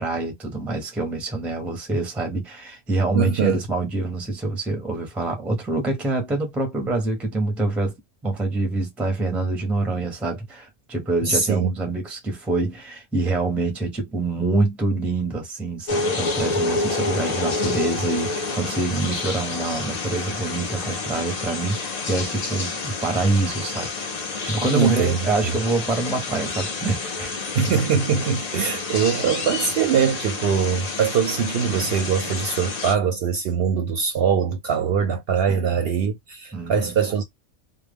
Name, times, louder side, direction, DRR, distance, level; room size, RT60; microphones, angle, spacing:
voice 1, 0.0-7.9 8.2-23.9 24.4-27.8 35.5-35.9 36.5-36.9, right 2 dB, ahead, 0.5 m, -26 dB
voice 2, 3.1-3.6 11.2-11.7 24.7-25.5 27.5-37.2, right 6 dB, 65° right, 0.7 m, -22 dB
sound 1, 15.9-32.9, left 3 dB, 65° left, 0.4 m, -29 dB
2.2 x 2.0 x 3.3 m
omnidirectional pair, 1.3 m